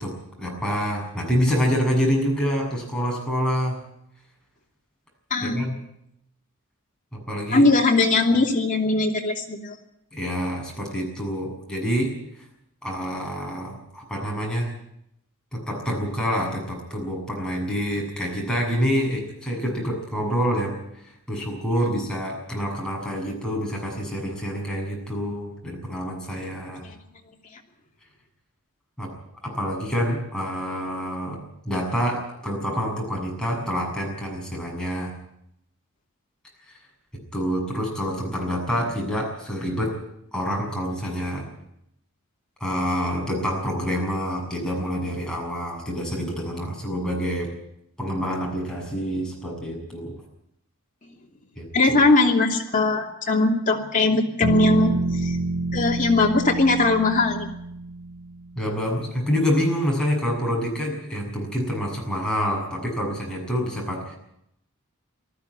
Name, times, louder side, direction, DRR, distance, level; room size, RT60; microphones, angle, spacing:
voice 1, 0.0-3.8 5.4-5.7 7.1-7.7 10.1-12.1 12.8-14.7 15.5-20.7 21.0-26.8 29.0-29.1 29.4-31.4 31.6-35.1 36.7-36.8 37.1-40.0 40.3-41.5 42.6-47.5 48.0-50.1 51.6-52.0 58.6-64.2, equal, 5° left, -2 dB, 7.2 m, -27 dB
voice 2, 5.3-5.6 7.5-9.7 51.7-55.4 55.7-57.5, left 3 dB, 40° left, 1 dB, 2.9 m, -20 dB
sound 1, 54.4-58.4, right 2 dB, 50° right, 6.6 m, -27 dB
19.5 x 14.5 x 9.5 m, 0.78 s
head